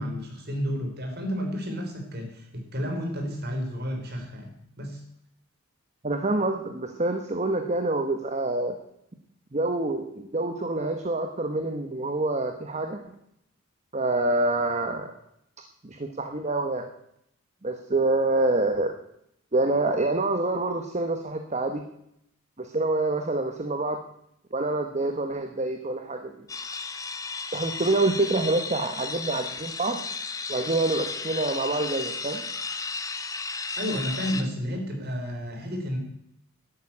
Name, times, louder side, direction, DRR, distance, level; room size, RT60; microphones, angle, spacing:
voice 1, 0.0-4.5 4.8-5.0 33.8-36.0, equal, 50° right, 2 dB, 3.7 m, -31 dB
voice 2, 6.0-8.7 9.5-13.0 13.9-15.1 15.8-16.9 17.6-18.9 19.5-21.8 22.6-24.0 24.5-26.3 27.5-30.0 30.5-32.4, right 2 dB, 30° right, 5 dB, 1.0 m, -26 dB
sound 1, 26.5-34.4, left 4 dB, 15° left, 0.8 m, -34 dB
11.5 x 9.1 x 8.6 m, 0.77 s
head